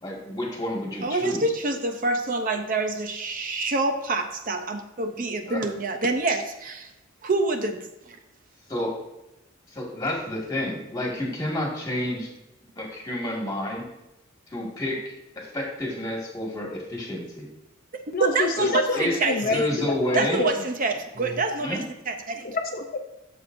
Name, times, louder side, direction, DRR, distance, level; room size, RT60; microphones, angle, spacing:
voice 1, 0.0-1.4 5.5-5.6 8.7-8.9 9.7-12.3 12.8-13.9 14.5-15.0 15.4-17.5 18.6-18.7 18.9-19.2 19.4-20.4 21.6-21.8, left 1 dB, 20° left, -2 dB, 1.9 m, -29 dB
voice 2, 1.0-6.9 7.2-8.2 18.2-19.7 20.1-22.5, right 3 dB, 40° right, 6 dB, 0.6 m, -27 dB
voice 3, 18.1-20.5 22.4-23.0, left 3 dB, 45° left, 3 dB, 0.6 m, -27 dB
12.5 x 7.0 x 2.6 m, 0.93 s
head